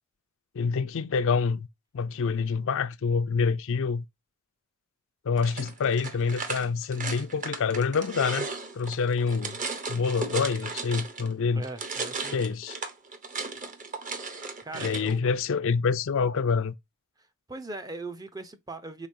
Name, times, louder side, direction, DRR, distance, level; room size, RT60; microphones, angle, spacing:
voice 1, 0.5-1.7 1.9-4.0 5.3-8.5 8.7-9.6 9.9-11.6 12.3-12.8 14.8-16.7, left 5 dB, 60° left, 0.4 m, -26 dB
sound 1, 5.4-11.3 11.6-15.1, right 4 dB, 35° right, 0.9 m, -36 dB
voice 2, 11.5-12.5 14.6-15.2 17.5-19.1, right 2 dB, 15° right, 0.6 m, -39 dB
4.9 x 3.7 x 2.6 m
head